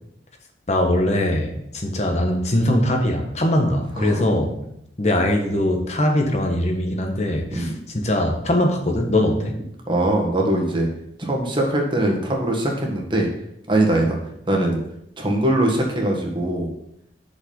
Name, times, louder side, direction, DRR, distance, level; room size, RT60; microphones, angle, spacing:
voice 1, 0.7-4.6 5.0-9.6, left 1 dB, 40° left, 3 dB, 1.2 m, -21 dB
voice 2, 3.9-4.3 7.5-7.8 9.9-10.9 11.2-13.3 13.7-14.2 14.5-14.8 15.2-16.7, right 1 dB, 30° right, 0 dB, 1.5 m, -21 dB
6.2 x 5.4 x 5.2 m, 0.77 s
head